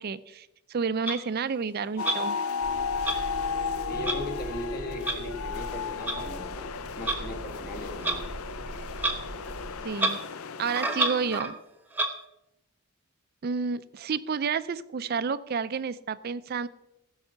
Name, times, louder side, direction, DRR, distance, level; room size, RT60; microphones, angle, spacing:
voice 1, 0.0-2.5 9.8-10.2 10.6-11.6 13.4-16.7, right 5 dB, 45° right, 14 dB, 0.4 m, -30 dB
Clock, 1.1-1.2 2.0-2.2 3.0-3.2 4.0-4.2 5.0-5.2 6.1-6.2 7.0-7.2 8.0-8.2 9.0-9.2 9.4-9.5 9.9-10.2 10.6-11.5 11.9-12.1, right 2 dB, 10° right, 1.0 m, -28 dB
sound 1, 2.0-11.4, left 5 dB, 70° left, 0.5 m, -34 dB
sound 2, 2.6-9.8, right 2 dB, 85° right, 1.0 m, -41 dB
voice 2, 3.9-8.3, left 2 dB, 40° left, 4 dB, 1.7 m, -39 dB
15.5 x 5.6 x 6.8 m, 0.89 s
head